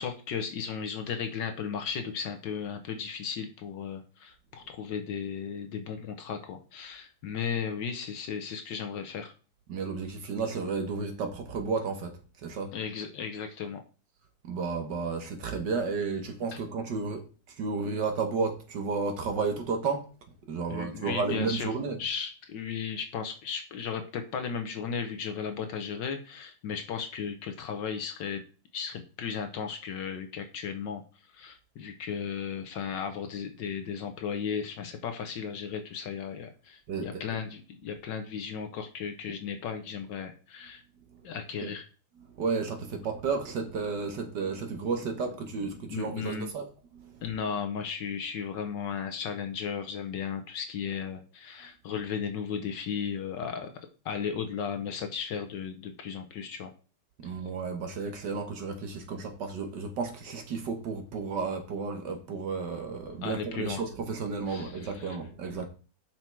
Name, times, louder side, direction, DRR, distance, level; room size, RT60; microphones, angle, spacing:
voice 1, 0.0-9.3 12.7-13.8 16.5-16.6 20.7-21.7 22.0-28.4 28.7-31.0 31.3-40.8 41.2-41.9 45.9-46.5 47.2-53.7 54.0-56.7 63.2-63.8 64.5-65.2, left 7 dB, 65° left, 1.3 m, -35 dB
voice 2, 9.7-12.1 12.4-12.7 14.4-17.2 17.6-20.0 20.5-22.0 36.9-37.2 41.1-41.2 41.6-41.7 42.4-46.6 46.9-47.2 57.2-65.7, right 4 dB, 60° right, 1.6 m, -32 dB
5.9 x 5.7 x 4.5 m
omnidirectional pair, 2.4 m